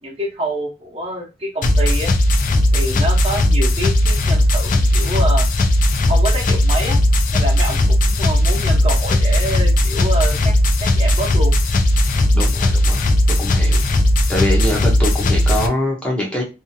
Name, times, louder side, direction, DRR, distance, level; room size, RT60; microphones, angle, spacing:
voice 1, 0.0-2.1 2.7-5.5 6.1-7.0 7.3-10.5 10.8-11.5, right 1 dB, 35° right, -1 dB, 0.9 m, -26 dB
sound 1, 1.6-15.7, left 1 dB, 50° left, 0.4 m, -16 dB
voice 2, 12.3-13.1 13.4-13.8 14.3-16.4, left 1 dB, 5° left, -2 dB, 0.7 m, -23 dB
2.7 x 2.4 x 2.6 m, 0.27 s
head